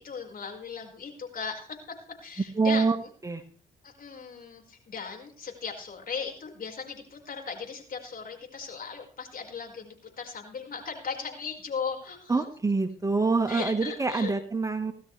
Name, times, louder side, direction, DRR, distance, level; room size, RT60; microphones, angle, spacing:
voice 1, 0.0-1.8 2.2-3.1 3.8-12.5 13.5-14.3, left 5 dB, 50° left, 2 dB, 5.2 m, -37 dB
voice 2, 2.6-2.9 3.2-3.4 12.3-14.9, right 4 dB, 15° right, 8 dB, 1.5 m, -25 dB
18.0 x 12.5 x 3.4 m, 0.42 s
supercardioid pair, 65°, 18 cm